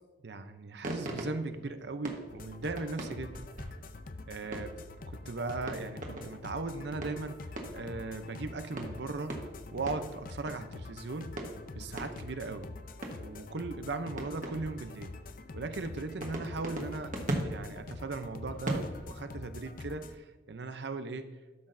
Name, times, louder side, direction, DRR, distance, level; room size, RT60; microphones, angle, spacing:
voice 1, 0.2-3.4 4.3-4.7 5.1-9.3 9.7-11.4 11.7-12.7 13.2-15.1 15.5-21.4, right 3 dB, 65° right, 9 dB, 0.6 m, -38 dB
sound 1, 0.8-5.0 5.5-6.5 6.9-8.1 8.8-10.8 11.4-12.6 13.0-13.5 14.2-15.2 15.8-19.4, right 1 dB, 45° right, 1.3 m, -40 dB
sound 2, 2.3-20.2, left 3 dB, 50° left, 0.5 m, -46 dB
12.5 x 6.1 x 2.6 m, 1.2 s
head